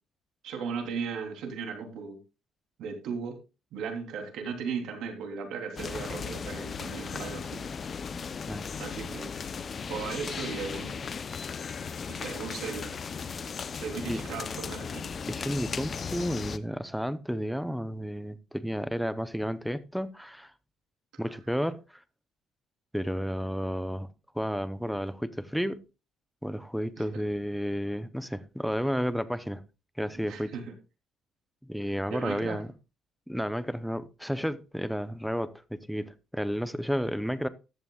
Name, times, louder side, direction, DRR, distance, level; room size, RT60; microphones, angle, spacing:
voice 1, 0.4-2.2 2.8-3.4 3.7-7.6 8.8-9.3 9.9-11.0 12.1-13.0 13.8-15.1 27.0-27.2 30.2-30.6 32.1-32.6, right 5 dB, 75° right, 3.4 m, -36 dB
sound 1, 5.8-16.6, left 6 dB, 35° left, 0.6 m, -36 dB
voice 2, 15.3-20.5 21.2-22.0 22.9-24.1 24.3-25.8 26.4-29.6 30.0-30.6 31.6-32.7 33.3-37.5, equal, ahead, 0.7 m, -32 dB
14.5 x 11.0 x 2.4 m
cardioid pair, 145°, 0 cm